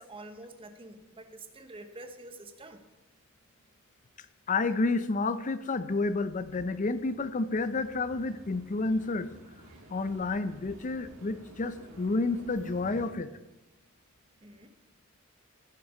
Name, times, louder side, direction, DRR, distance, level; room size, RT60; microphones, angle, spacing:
voice 1, 0.0-2.8 14.4-14.7, right 2 dB, 25° right, 7 dB, 0.9 m, -47 dB
voice 2, 4.5-9.3 9.9-13.3, left 3 dB, 35° left, 13 dB, 0.5 m, -30 dB
sound 1, 6.3-13.1, right 1 dB, 85° right, 1.9 m, -52 dB
15.0 x 5.9 x 4.9 m, 1.0 s
head